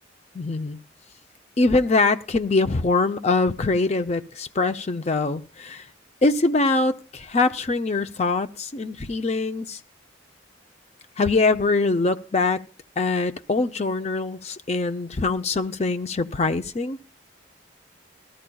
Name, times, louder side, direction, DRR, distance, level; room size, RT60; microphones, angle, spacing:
voice 1, 0.3-0.8 1.6-5.9 6.2-9.8 11.2-12.6 13.0-17.0, left 3 dB, 35° left, 0.5 m, -23 dB
18.0 x 13.5 x 2.3 m
head